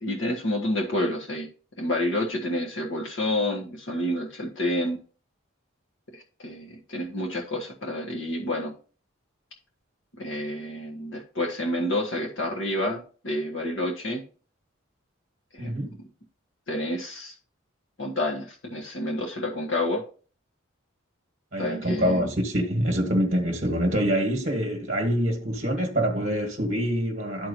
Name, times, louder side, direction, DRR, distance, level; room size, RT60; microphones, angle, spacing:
voice 1, 0.0-1.5 1.8-5.0 6.1-8.7 10.2-14.2 15.5-15.9 16.7-17.3 18.0-20.0 21.6-22.3, left 1 dB, 65° left, 1.5 m, -29 dB
voice 2, 15.6-16.0 21.5-27.5, equal, 40° right, 1.3 m, -25 dB
12.5 x 4.5 x 2.7 m
head